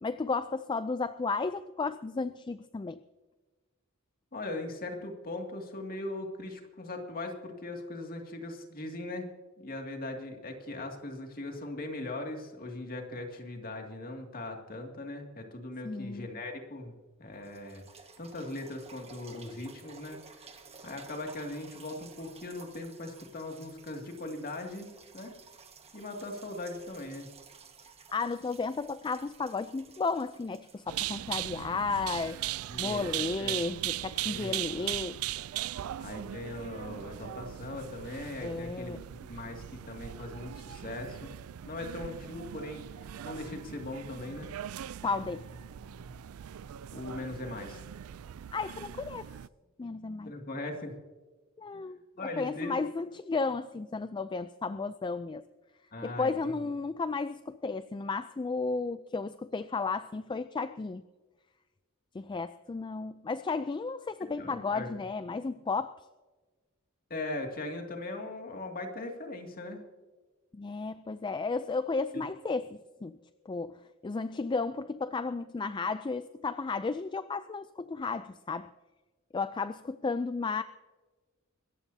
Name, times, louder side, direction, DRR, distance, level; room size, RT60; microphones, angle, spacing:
voice 1, 0.0-3.0 15.8-16.3 28.1-32.4 32.8-35.2 38.4-39.0 45.0-45.5 48.5-49.3 49.8-50.3 51.6-52.0 52.4-55.4 56.0-61.0 62.1-66.0 70.5-73.2 73.5-78.7 79.3-80.6, left 4 dB, 20° left, 12 dB, 0.3 m, -33 dB
voice 2, 4.3-9.3 9.6-25.3 25.9-27.3 32.7-33.6 34.2-34.9 36.0-39.0 39.3-41.3 41.7-44.5 46.9-47.8 50.2-50.9 52.2-52.7 55.9-56.5 64.4-64.9 67.1-69.8 72.1-72.2, left 2 dB, 45° left, 3 dB, 2.3 m, -40 dB
sound 1, 16.9-17.0 17.4-33.1 33.7-33.8, right 5 dB, 30° right, 1.5 m, -55 dB
sound 2, 30.9-49.5, right 13 dB, 80° right, 0.4 m, -39 dB
25.5 x 14.0 x 2.8 m, 1.3 s
head